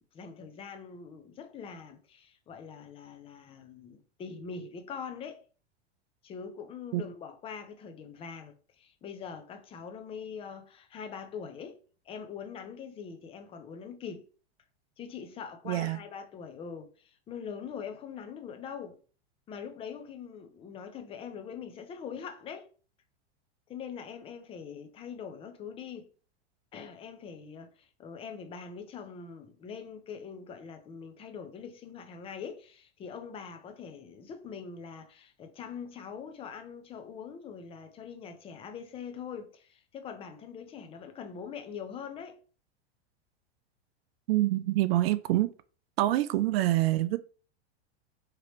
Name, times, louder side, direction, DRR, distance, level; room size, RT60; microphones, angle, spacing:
voice 1, 0.1-5.4 6.2-11.8 12.1-14.3 15.0-19.0 19.5-22.7 23.7-26.1 26.7-42.4, left 6 dB, 15° left, 0.4 m, -43 dB
voice 2, 15.7-16.0 44.3-45.5 46.0-47.2, right 15 dB, 65° right, 0.5 m, -26 dB
3.0 x 2.9 x 3.0 m
hypercardioid pair, 120°, 33 cm